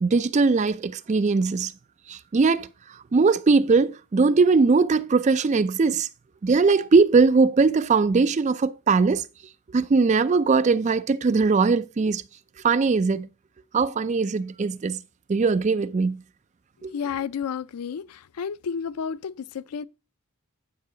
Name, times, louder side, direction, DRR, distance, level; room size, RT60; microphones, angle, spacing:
voice 1, 0.0-1.7 2.1-2.7 3.1-6.1 6.4-9.2 9.7-12.2 12.6-13.3 13.7-15.0 15.3-16.2 16.8-16.9, right 4 dB, 30° right, 0.3 m, -20 dB
voice 2, 16.9-19.8, left 7 dB, 90° left, 0.4 m, -31 dB
9.6 x 5.6 x 3.8 m
head